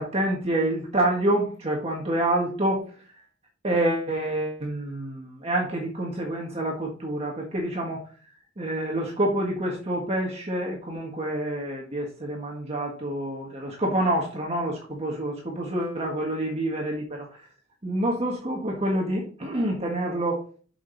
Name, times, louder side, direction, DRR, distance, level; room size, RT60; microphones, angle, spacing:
voice 1, 0.0-2.8 3.6-8.0 8.6-17.4 17.8-20.4, right 1 dB, 30° right, -1 dB, 1.6 m, -27 dB
7.7 x 6.0 x 4.0 m, 0.40 s
head